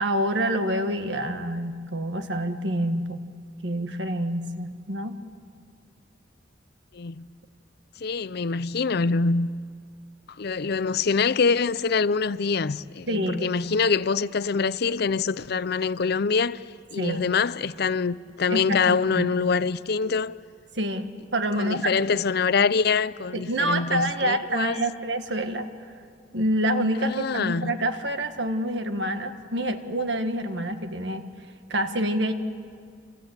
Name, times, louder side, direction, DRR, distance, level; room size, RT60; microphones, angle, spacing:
voice 1, 0.0-3.2 3.6-5.2 13.1-13.5 17.0-17.3 18.5-19.4 20.8-21.1 21.3-21.9 23.3-25.7 26.3-31.2 31.7-32.3, right 1 dB, 70° right, 1.7 m, -27 dB
voice 2, 6.9-7.3 8.0-9.5 10.4-16.6 16.9-20.3 21.6-24.8 27.0-27.7, left 5 dB, 60° left, 0.6 m, -25 dB
27.5 x 26.5 x 8.1 m
head